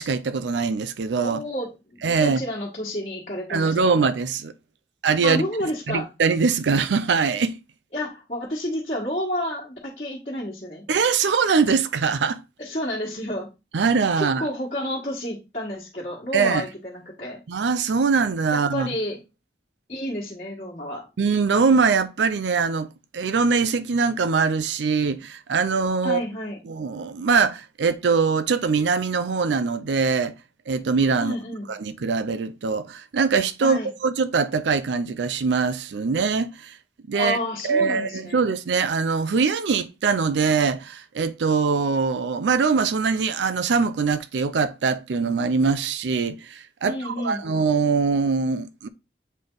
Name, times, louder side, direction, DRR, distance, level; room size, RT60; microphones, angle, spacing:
voice 1, 0.0-1.4 2.0-2.4 3.5-4.5 5.0-5.4 5.9-7.6 10.9-12.4 13.7-14.5 16.3-16.6 17.5-18.9 21.2-22.9 23.1-26.2 26.7-30.3 30.7-31.4 31.7-36.8 37.1-37.4 37.6-48.9, right 5 dB, 85° right, 0.5 m, -22 dB
voice 2, 1.2-4.0 5.2-6.1 7.9-10.9 12.6-13.5 14.2-17.4 18.5-19.2 19.9-21.1 26.0-26.6 31.2-31.7 33.6-33.9 37.1-38.4 46.8-47.4, left 1 dB, 40° left, 1.5 m, -30 dB
7.5 x 3.4 x 3.9 m
head